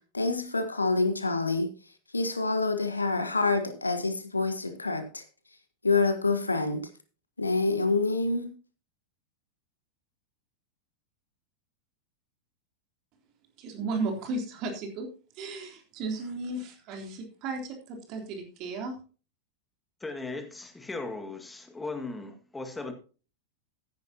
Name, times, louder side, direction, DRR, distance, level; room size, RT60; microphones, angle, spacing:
voice 1, 0.1-1.7 2.1-5.2 5.8-6.8 7.4-8.5, left 3 dB, 80° left, 1.5 m, -27 dB
voice 2, 13.6-15.1 15.3-19.0, right 3 dB, 40° right, 3.5 m, -34 dB
voice 3, 20.0-22.9, left 3 dB, 10° left, 2.0 m, -37 dB
15.0 x 10.5 x 2.9 m
figure-of-eight pair, 90°, 0 cm